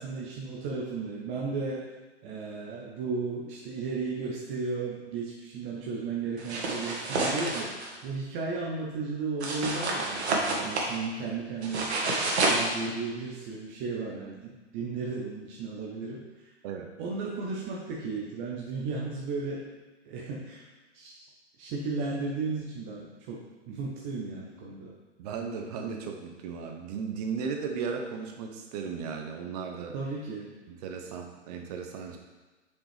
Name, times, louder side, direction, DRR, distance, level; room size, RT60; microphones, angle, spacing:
voice 1, 0.0-1.8 2.2-11.9 12.5-16.2 17.0-19.6 20.1-20.6 20.9-21.2 21.6-24.9 29.9-30.5, right 4 dB, 15° right, -3 dB, 0.4 m, -34 dB
sound 1, 6.4-7.9 9.4-10.9 11.6-12.7, right 2 dB, 60° right, 1.7 m, -28 dB
voice 2, 25.2-29.9 30.7-32.2, right 6 dB, 35° right, 3 dB, 0.9 m, -36 dB
7.4 x 5.3 x 3.4 m, 1.3 s
hypercardioid pair, 125°, 36 cm